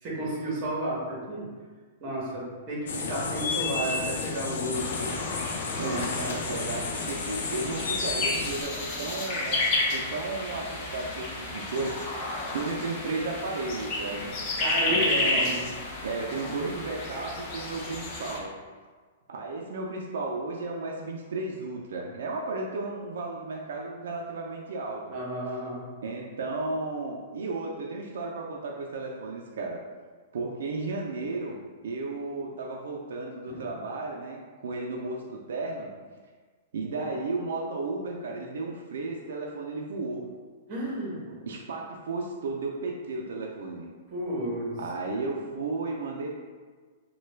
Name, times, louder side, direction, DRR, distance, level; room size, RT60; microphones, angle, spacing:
voice 1, 0.0-1.4 2.0-5.1 5.8-6.6 14.6-15.6 25.1-25.8 33.5-33.6 40.7-41.2 44.1-44.8, right 1 dB, 25° right, -5 dB, 0.9 m, -32 dB
sound 1, 2.9-8.6, left 4 dB, 85° left, 0.4 m, -32 dB
sound 2, 4.7-18.4, left 2 dB, 30° left, 0.5 m, -32 dB
voice 2, 5.8-9.6 9.9-14.3 14.9-15.7 16.0-18.5 19.3-25.2 26.0-29.8 30.3-35.9 36.7-40.2 41.3-43.9 44.8-46.4, right 3 dB, 75° right, -1 dB, 0.4 m, -34 dB
3.1 x 2.2 x 3.2 m, 1.5 s
hypercardioid pair, 170°, 0 cm